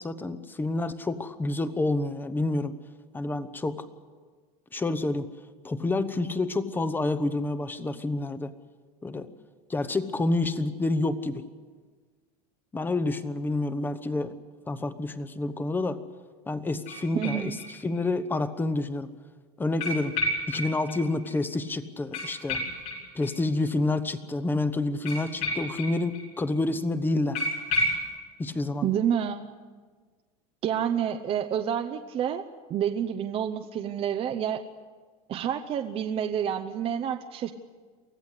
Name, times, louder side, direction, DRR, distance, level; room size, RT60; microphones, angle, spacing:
voice 1, 0.0-2.7 3.1-3.8 4.7-5.3 5.6-8.5 9.0-9.3 9.7-11.4 12.7-14.4 14.7-16.0 16.5-17.6 17.8-19.1 19.6-20.2 20.5-22.6 23.1-27.4 28.4-28.9, left 2 dB, 10° left, 13 dB, 1.0 m, -28 dB
sound 1, 16.9-18.0 18.3-18.4 19.8-21.0 21.2-21.3 21.6-21.7 22.1-23.6 25.1-26.3 26.5-26.6 26.9-27.0 27.3-28.1, left 1 dB, 80° left, 7.4 m, -31 dB
voice 2, 17.1-17.6 28.8-29.5 30.6-34.6 35.3-37.5, right 9 dB, 30° right, 6 dB, 0.8 m, -29 dB
24.0 x 15.5 x 8.2 m, 1.5 s
supercardioid pair, 150°, 20 cm